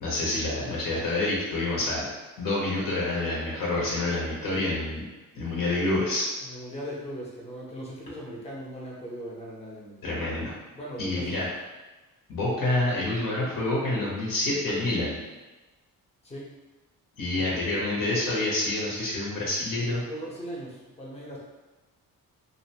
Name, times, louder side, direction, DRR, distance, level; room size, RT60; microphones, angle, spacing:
voice 1, 0.0-2.1 2.4-5.0 5.3-6.3 10.0-10.5 11.0-11.5 12.3-15.2 17.2-20.0, left 2 dB, 70° left, -4 dB, 0.8 m, -27 dB
voice 2, 6.4-10.3 10.7-11.5 16.2-16.5 17.4-17.5 20.0-21.4, equal, 20° left, -4 dB, 0.6 m, -39 dB
2.5 x 2.1 x 2.8 m, 1.2 s
cardioid pair, 125°, 35 cm